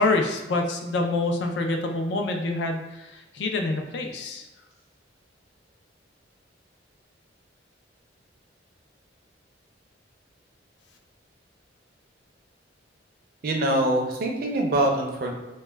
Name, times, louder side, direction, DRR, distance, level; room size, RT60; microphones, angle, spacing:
voice 1, 0.0-4.5, left 2 dB, 60° left, 3 dB, 0.4 m, -26 dB
voice 2, 13.4-15.3, right 1 dB, 50° right, 1 dB, 0.4 m, -24 dB
2.2 x 2.1 x 3.2 m, 1.1 s
head